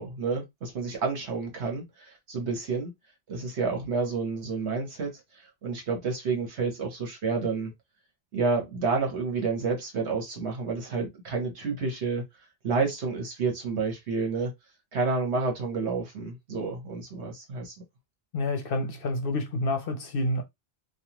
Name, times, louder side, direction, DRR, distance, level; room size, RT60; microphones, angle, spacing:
voice 1, 0.0-2.9 3.3-7.7 8.3-12.2 12.6-14.5 14.9-17.7, right 4 dB, 75° right, 1.3 m, -30 dB
voice 2, 18.3-20.4, left 2 dB, 60° left, 0.8 m, -28 dB
3.2 x 2.4 x 2.9 m
omnidirectional pair, 1.2 m